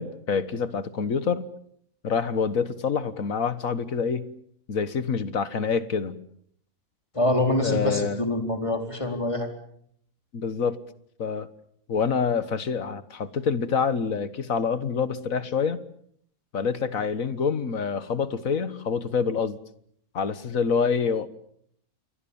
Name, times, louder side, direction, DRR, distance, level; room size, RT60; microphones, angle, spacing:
voice 1, 0.0-1.5 2.0-4.3 4.7-6.2 7.6-8.2 10.3-10.8 11.2-11.5 11.9-15.8 16.5-19.6 20.1-21.3, left 6 dB, 65° left, 14 dB, 1.8 m, -26 dB
voice 2, 7.1-9.5, left 1 dB, 20° left, 5 dB, 4.2 m, -25 dB
28.5 x 23.0 x 7.1 m, 0.67 s
omnidirectional pair, 1.5 m